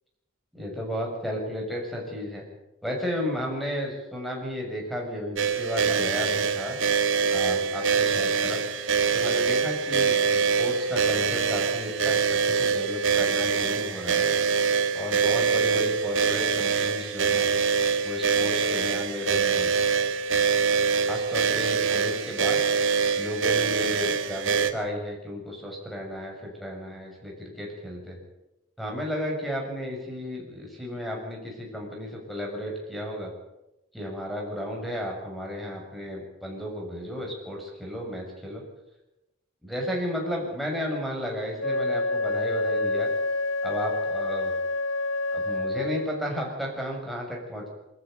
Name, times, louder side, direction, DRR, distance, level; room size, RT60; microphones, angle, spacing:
voice 1, 0.5-2.4 2.8-6.8 7.3-8.6 9.1-14.3 14.9-17.5 18.0-19.7 21.1-22.6 23.1-28.2 28.8-33.3 33.9-38.6 39.6-43.1 43.6-44.6 45.3-47.7, equal, ahead, 0 dB, 6.9 m, -33 dB
sound 1, 5.4-24.7, right 5 dB, 75° right, 2.1 m, -24 dB
Wind instrument woodwind instrument, 41.6-46.2, left 2 dB, 75° left, 1.0 m, -28 dB
24.0 x 14.0 x 9.4 m, 0.93 s
head